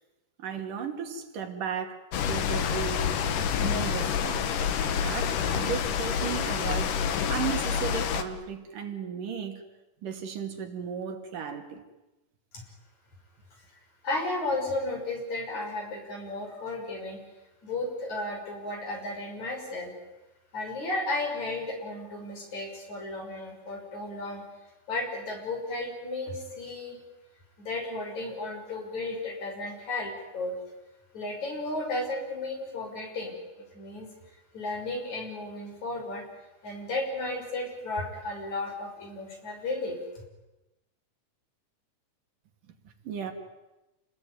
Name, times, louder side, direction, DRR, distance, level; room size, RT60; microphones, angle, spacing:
voice 1, 0.4-3.0 3.5-4.5 5.0-9.6 10.0-11.8 43.0-43.3, right 7 dB, 85° right, 5 dB, 4.1 m, -35 dB
sound 1, 2.1-8.2, left 7 dB, 80° left, 3.0 m, -28 dB
voice 2, 14.0-17.2 17.6-19.9 20.5-24.4 24.9-27.0 27.6-30.5 31.1-33.4 33.7-34.1 34.5-36.2 36.6-40.0, left 2 dB, 60° left, 3 dB, 7.3 m, -34 dB
29.0 x 20.0 x 9.6 m, 1.0 s
omnidirectional pair, 3.6 m